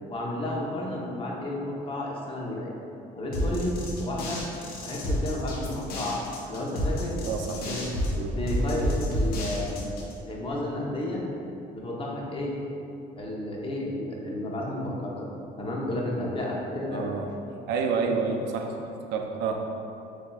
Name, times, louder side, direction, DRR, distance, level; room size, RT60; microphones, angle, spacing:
voice 1, 0.1-2.7 3.2-3.7 4.0-4.4 4.8-6.2 6.5-7.2 7.7-7.8 8.3-9.8 10.3-11.2 11.7-12.5 13.2-15.3 15.6-17.1 18.0-18.1, left 1 dB, 30° left, -3 dB, 0.9 m, -32 dB
sound 1, 3.3-10.1, equal, 65° left, 0.9 m, -30 dB
voice 2, 7.2-7.7 8.2-8.4 16.9-17.3 17.7-19.7, right 5 dB, 85° right, 3 dB, 0.5 m, -29 dB
7.5 x 2.7 x 2.3 m, 2.7 s
cardioid pair, 110°, 17 cm